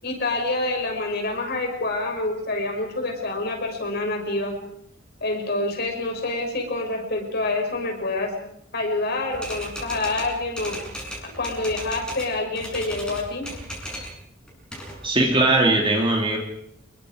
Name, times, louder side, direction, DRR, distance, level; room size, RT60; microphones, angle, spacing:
voice 1, 0.0-4.6 5.2-8.3 8.7-10.8 11.2-13.5, left 2 dB, 55° left, 2 dB, 6.4 m, -27 dB
Typewriter, 9.3-12.3 12.6-14.2 14.5-15.5, equal, 5° left, 7.1 m, -36 dB
voice 2, 15.0-16.4, right 2 dB, 25° right, 1 dB, 2.8 m, -19 dB
29.5 x 22.0 x 5.0 m, 0.74 s
head